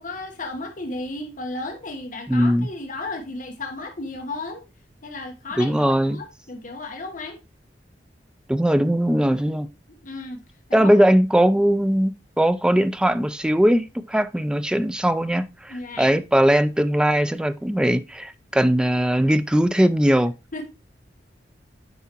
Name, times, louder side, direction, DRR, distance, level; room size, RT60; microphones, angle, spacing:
voice 1, 0.0-4.7 5.0-7.4 10.0-10.4 10.7-10.9 15.7-16.1 20.5-20.6, left 2 dB, 50° left, 1.2 m, -34 dB
voice 2, 2.3-2.7 5.6-6.2 8.5-9.7 10.7-20.3, equal, 5° right, 0.3 m, -20 dB
9.2 x 4.8 x 2.9 m
head